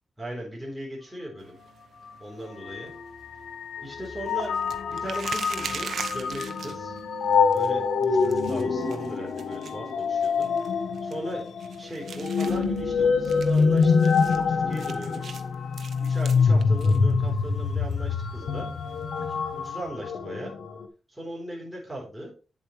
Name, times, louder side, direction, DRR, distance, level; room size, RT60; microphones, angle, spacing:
voice 1, 0.2-1.6 2.2-2.9 3.8-4.5 4.9-6.9 7.5-10.5 11.0-15.4 16.0-18.7 19.2-20.6 21.1-22.3, right 1 dB, 5° right, -3 dB, 3.8 m, -38 dB
sound 1, 1.4-19.9, right 6 dB, 65° right, 0.9 m, -44 dB
sound 2, 2.1-2.2 2.6-20.9, left 5 dB, 80° left, 1.0 m, -25 dB
8.5 x 7.5 x 3.2 m, 0.35 s
wide cardioid pair, 135°, 0 cm